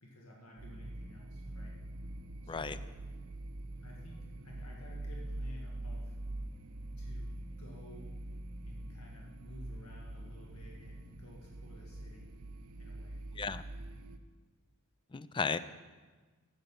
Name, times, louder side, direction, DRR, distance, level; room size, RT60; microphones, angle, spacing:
voice 1, 0.0-1.7 2.4-2.8 3.8-6.1 7.0-8.1 8.6-12.3 12.8-13.2, left 1 dB, 80° left, -2 dB, 1.7 m, -54 dB
sound 1, 0.6-14.2, right 1 dB, 80° right, 0.7 m, -44 dB
voice 2, 15.1-15.6, left 5 dB, 20° left, 14 dB, 0.3 m, -34 dB
11.0 x 7.9 x 5.4 m, 1.3 s
head